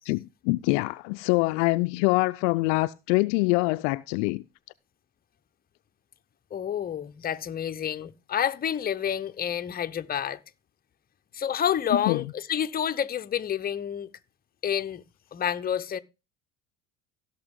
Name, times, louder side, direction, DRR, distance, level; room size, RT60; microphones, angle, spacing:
voice 1, 0.1-4.4 12.1-12.2, left 24 dB, 60° left, 0.5 m, -24 dB
voice 2, 6.5-10.4 11.3-14.1 14.6-15.0 15.3-16.0, left 9 dB, 25° left, 0.7 m, -29 dB
16.5 x 6.2 x 3.6 m
hypercardioid pair, 75°, 39 cm